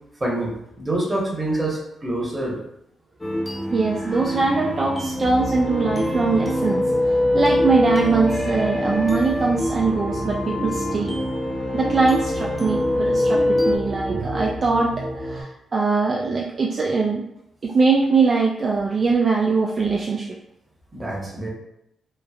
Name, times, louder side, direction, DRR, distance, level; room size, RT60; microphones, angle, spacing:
voice 1, 0.2-2.6 20.9-21.5, right 1 dB, 25° right, -3 dB, 1.0 m, -26 dB
sound 1, 3.2-13.8, left 1 dB, 15° left, 0.5 m, -24 dB
voice 2, 3.7-6.8 7.3-11.2 11.7-17.2 17.6-20.3, right 4 dB, 50° right, -2 dB, 0.3 m, -22 dB
sound 2, 5.2-15.4, right 1 dB, 35° left, 0.8 m, -31 dB
3.1 x 2.0 x 2.3 m, 0.81 s
supercardioid pair, 60°, 0 cm